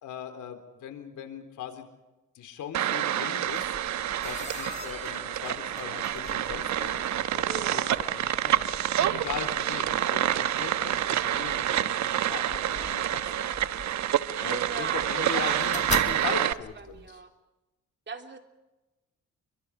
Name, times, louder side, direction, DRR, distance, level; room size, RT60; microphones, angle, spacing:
voice 1, 0.0-1.9 2.3-3.7 4.2-8.7 9.1-13.5 14.4-17.2, left 9 dB, 80° left, 7 dB, 3.9 m, -40 dB
sound 1, 2.7-16.5, right 11 dB, 65° right, 1.0 m, -28 dB
sound 2, 3.5-17.1, left 3 dB, 25° left, 2.5 m, -43 dB
sound 3, 4.6-13.7, right 1 dB, 20° right, 7.3 m, -47 dB
voice 2, 7.5-8.1 14.5-15.6 16.0-17.3 18.1-18.4, right 5 dB, 35° right, 5 dB, 3.2 m, -39 dB
30.0 x 24.0 x 5.0 m, 1.0 s
cardioid pair, 90°, 30 cm